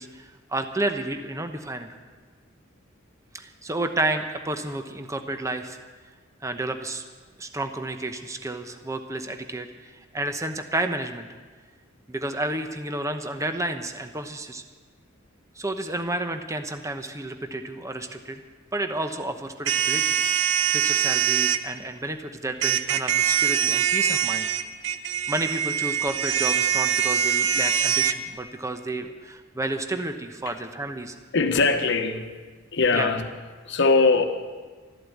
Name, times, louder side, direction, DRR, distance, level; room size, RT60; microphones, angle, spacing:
voice 1, 0.0-1.9 3.3-5.8 6.4-7.0 7.4-11.3 12.1-14.6 15.6-18.4 18.7-24.5 25.3-31.1 32.9-33.1, right 2 dB, 15° right, 0.9 m, -31 dB
sound 1, 19.7-21.6 22.6-28.1, right 9 dB, 65° right, 0.8 m, -23 dB
voice 2, 31.3-32.3 32.7-33.3 33.6-34.2, left 3 dB, 60° left, 1.1 m, -21 dB
13.0 x 11.5 x 8.4 m
head